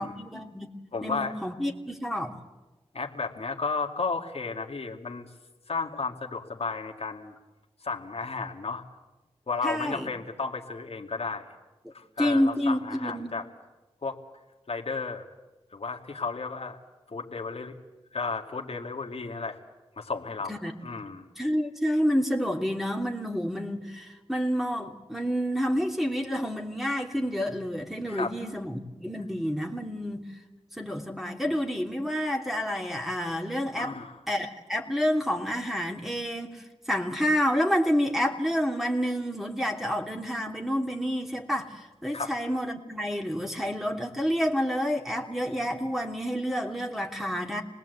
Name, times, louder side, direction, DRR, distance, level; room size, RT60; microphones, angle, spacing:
voice 1, 0.0-0.7 1.0-2.4 9.6-10.1 12.2-13.3 20.5-21.0 21.4-30.2 30.8-33.9 34.3-36.6 36.9-47.6, equal, ahead, 2 dB, 3.1 m, -29 dB
voice 2, 0.9-1.4 2.9-5.3 5.7-7.3 7.8-8.8 9.5-11.5 11.9-13.5 14.0-14.2 14.7-15.3 15.7-16.8 17.1-17.7 18.1-19.6 20.0-20.5 20.8-21.3 28.1-28.3 33.8-34.2 42.1-42.4, left 4 dB, 65° left, 2 dB, 2.1 m, -33 dB
27.5 x 19.5 x 8.1 m, 1.1 s
cardioid pair, 45°, 11 cm